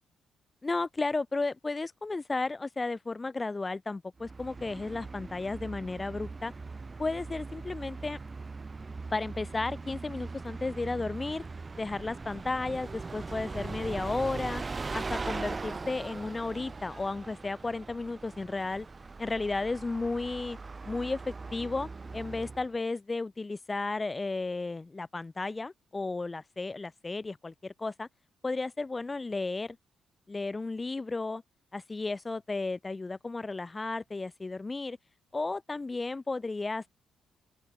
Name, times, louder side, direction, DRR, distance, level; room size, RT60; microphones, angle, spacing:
voice 1, 0.6-6.5 7.0-8.2 9.1-11.4 11.8-14.6 14.9-18.9 19.2-20.6 20.9-28.1 28.4-29.8 30.3-31.4 31.7-35.0 35.3-36.9, left 3 dB, 25° left, 3.6 m, -33 dB
Bus, 4.2-22.8, right 4 dB, 30° right, 2.1 m, -40 dB
open air
supercardioid pair, 65°, 0 cm